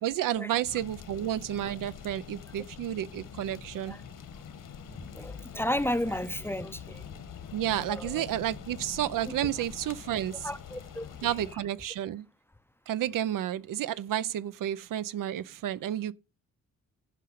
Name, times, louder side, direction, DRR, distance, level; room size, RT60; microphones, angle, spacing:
voice 1, 0.0-4.0 7.5-10.5 11.2-12.3 12.9-16.1, right 11 dB, 90° right, 0.6 m, -31 dB
sound 1, 0.6-11.5, left 7 dB, 75° left, 1.6 m, -45 dB
voice 2, 5.0-7.1 7.8-8.2 9.3-9.5 10.3-11.4, left 1 dB, 5° left, 0.5 m, -34 dB
11.5 x 5.3 x 5.8 m
cardioid pair, 120°, 32 cm